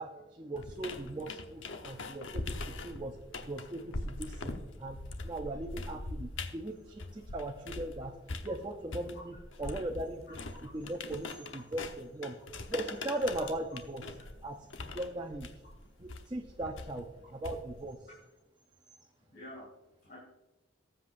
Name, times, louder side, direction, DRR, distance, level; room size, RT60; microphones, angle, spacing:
voice 1, 0.0-3.2 3.5-8.1 8.4-10.4 10.7-12.4 12.7-14.0 14.4-15.5 16.0-18.1, right 1 dB, 20° right, 2 dB, 0.6 m, -39 dB
sound 1, 0.6-7.9 8.3-17.9, left 2 dB, 85° left, 1.0 m, -42 dB
voice 2, 1.7-2.4 4.8-5.3 6.3-6.5 7.2-7.3 8.4-8.5 9.6-9.7 10.5-10.8 14.2-14.5 15.8-15.9 17.2-17.3 18.1-18.2 19.2-19.7 20.0-20.2, left 1 dB, 55° left, -6 dB, 2.8 m, -54 dB
19.0 x 7.9 x 2.6 m, 1.1 s
head